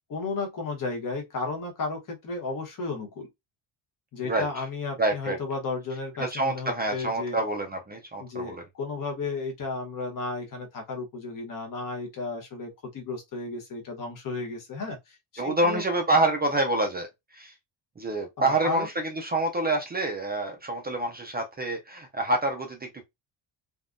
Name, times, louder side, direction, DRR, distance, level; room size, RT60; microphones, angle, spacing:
voice 1, 0.1-3.3 4.1-7.4 8.2-15.8 18.4-18.9, left 3 dB, 40° left, 1.0 m, -33 dB
voice 2, 5.0-5.4 6.2-8.6 15.4-17.1 17.3-17.5 18.0-23.0, right 2 dB, 20° right, 0.4 m, -27 dB
3.6 x 2.2 x 2.5 m
cardioid pair, 165°, 50 cm